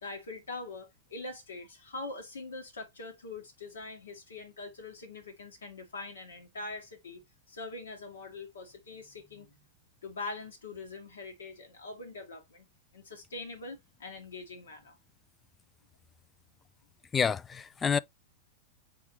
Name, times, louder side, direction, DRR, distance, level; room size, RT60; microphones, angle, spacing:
voice 1, 0.0-7.2 7.5-9.6 10.0-12.7 12.9-15.0, left 3 dB, 70° left, 1.7 m, -43 dB
voice 2, 17.1-18.0, left 6 dB, 20° left, 0.3 m, -28 dB
4.6 x 3.8 x 2.7 m
figure-of-eight pair, 90°, 0 cm